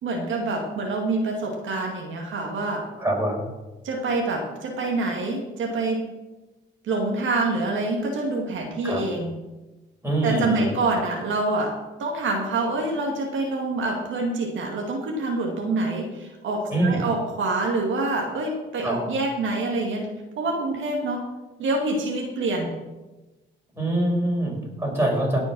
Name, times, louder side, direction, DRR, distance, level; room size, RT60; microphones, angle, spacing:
voice 1, 0.0-2.9 3.8-6.0 6.8-9.3 10.2-11.7 12.0-21.2 21.6-22.7, right 2 dB, 75° right, 0 dB, 2.2 m, -26 dB
voice 2, 3.0-3.4 8.8-9.0 10.0-10.8 16.7-17.0 18.8-19.0 23.7-25.4, right 1 dB, 10° right, -2 dB, 5.5 m, -24 dB
17.0 x 6.1 x 6.2 m, 1.1 s
cardioid pair, 90°, 20 cm